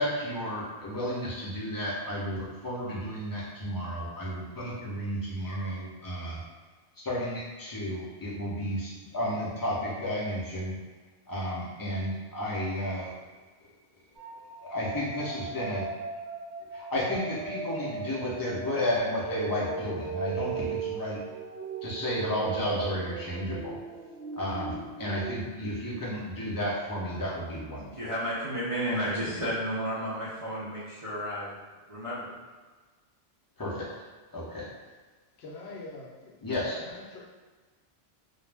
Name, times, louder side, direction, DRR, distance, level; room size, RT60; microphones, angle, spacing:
voice 1, 0.0-6.4 7.0-10.7 11.3-13.1 14.6-15.9 16.7-21.2 21.8-23.8 24.3-27.9 33.6-33.9 34.3-34.7 36.4-36.8, equal, 30° left, -6 dB, 0.4 m, -32 dB
sound 1, 14.2-25.4, right 5 dB, 70° right, 0.9 m, -38 dB
voice 2, 27.9-31.5 31.9-32.3, equal, 45° right, -10 dB, 0.4 m, -32 dB
voice 3, 35.4-37.3, left 2 dB, 70° left, -2 dB, 0.8 m, -45 dB
2.4 x 2.0 x 3.2 m, 1.3 s
omnidirectional pair, 1.2 m